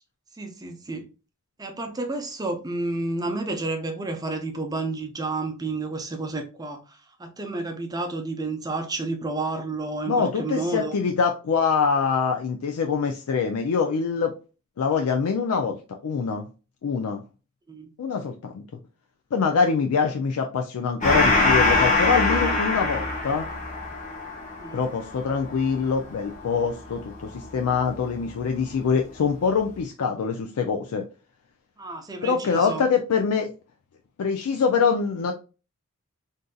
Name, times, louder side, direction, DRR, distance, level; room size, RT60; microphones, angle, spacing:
voice 1, 0.4-1.1 1.6-11.0 17.7-17.9 24.6-24.8 31.8-32.8, right 2 dB, 20° right, 0.6 m, -31 dB
voice 2, 10.1-14.3 14.8-16.5 16.8-17.2 18.0-18.6 19.3-23.5 24.7-31.0 32.2-33.5 34.2-35.3, left 5 dB, 85° left, 0.4 m, -24 dB
Gong, 21.0-28.0, left 3 dB, 35° left, 1.0 m, -24 dB
3.7 x 2.6 x 2.3 m
head